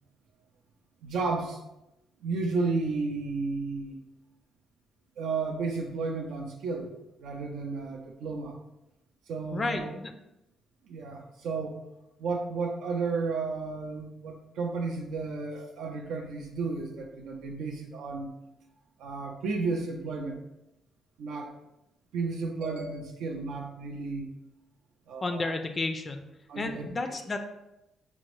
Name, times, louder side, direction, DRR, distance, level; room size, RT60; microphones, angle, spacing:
voice 1, 1.0-1.6 2.2-4.0 5.2-6.9 7.2-8.6 9.3-9.9 10.9-11.8 12.2-18.3 19.0-20.4 21.2-21.5 22.1-24.3 25.1-25.5 26.5-26.9, right 4 dB, 80° right, 2 dB, 0.4 m, -33 dB
voice 2, 9.5-10.1 25.2-26.2 26.6-27.4, left 3 dB, 35° left, 6 dB, 0.3 m, -32 dB
4.2 x 2.0 x 3.0 m, 0.90 s
cardioid pair, 90°, 0 cm